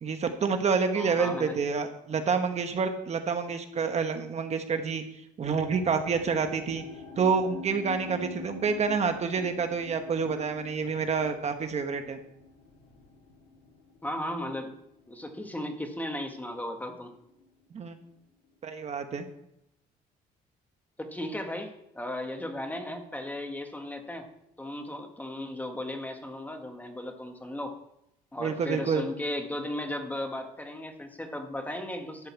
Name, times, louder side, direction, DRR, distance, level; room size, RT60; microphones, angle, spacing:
voice 1, 0.0-5.0 5.4-6.8 7.2-12.2 17.7-18.0 18.6-19.3 28.4-29.0, right 5 dB, 40° right, 6 dB, 1.2 m, -28 dB
voice 2, 0.9-1.6 14.0-14.7 15.1-17.1 21.0-24.3 24.6-27.7 28.3-32.3, left 1 dB, 10° left, 5 dB, 1.6 m, -36 dB
sound 1, 5.4-16.6 16.8-17.5 18.1-18.2, left 3 dB, 85° left, 2.6 m, -46 dB
12.0 x 5.3 x 8.3 m, 0.80 s
cardioid pair, 110°, 17 cm